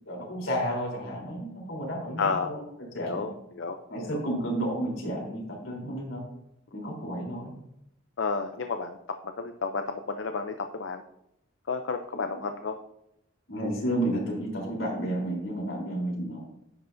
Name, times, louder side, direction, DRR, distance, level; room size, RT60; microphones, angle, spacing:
voice 1, 0.1-2.6 2.9-3.3 3.9-6.2 6.7-7.5 13.5-16.4, right 1 dB, 85° left, -2 dB, 3.5 m, -31 dB
voice 2, 2.2-2.6 3.0-4.2 8.2-9.0 9.2-11.0 11.7-12.8, left 4 dB, 65° left, 7 dB, 0.5 m, -32 dB
10.5 x 8.0 x 2.6 m, 0.81 s
head